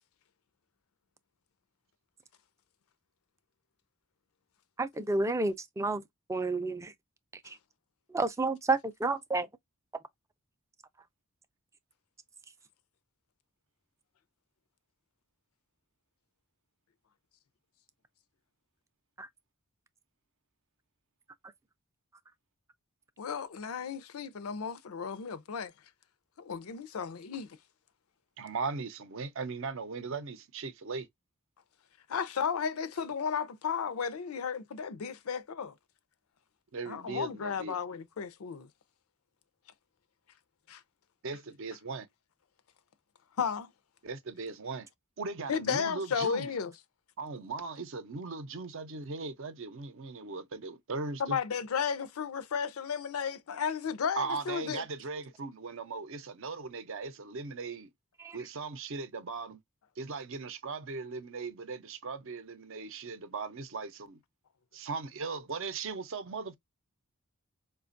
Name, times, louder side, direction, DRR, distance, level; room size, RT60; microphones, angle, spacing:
voice 1, 4.8-6.0 6.3-6.9 7.4-7.6 8.1-9.5 19.2-19.3 58.2-58.4, right 3 dB, 15° right, 0.3 m, -30 dB
voice 2, 23.2-25.7 26.4-27.5 32.1-35.7 36.9-38.7 40.7-40.8 43.4-43.7 45.5-46.7 51.2-54.8, left 6 dB, 80° left, 0.5 m, -34 dB
voice 3, 28.4-31.1 36.7-37.8 41.2-42.1 44.0-44.9 45.2-46.5 47.2-51.4 54.2-57.9 58.3-59.6 60.0-64.2 64.7-66.6, right 4 dB, 60° right, 0.6 m, -38 dB
4.9 x 2.3 x 2.5 m
head